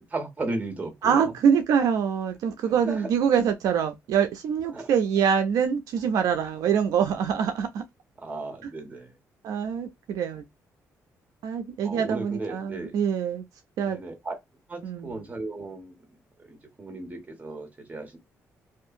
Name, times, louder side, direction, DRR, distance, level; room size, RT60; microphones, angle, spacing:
voice 1, 0.1-1.2 2.6-3.1 4.7-4.9 8.2-9.1 11.8-12.9 13.8-14.3 14.7-15.9 16.4-18.2, right 2 dB, 25° right, 1.3 m, -35 dB
voice 2, 1.0-7.8 9.4-10.5 11.4-13.4 13.8-14.0 14.8-15.2, right 7 dB, 85° right, 0.4 m, -25 dB
2.7 x 2.4 x 2.5 m
cardioid pair, 85°, 6 cm